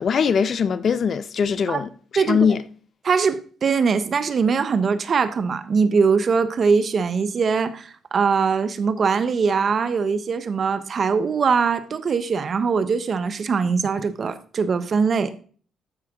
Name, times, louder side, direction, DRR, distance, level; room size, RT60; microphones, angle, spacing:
voice 1, 0.0-2.6, left 6 dB, 50° left, 0.8 m, -21 dB
voice 2, 3.0-15.3, right 5 dB, 45° right, 1.1 m, -22 dB
13.0 x 5.8 x 3.8 m
cardioid pair, 90°, 0 cm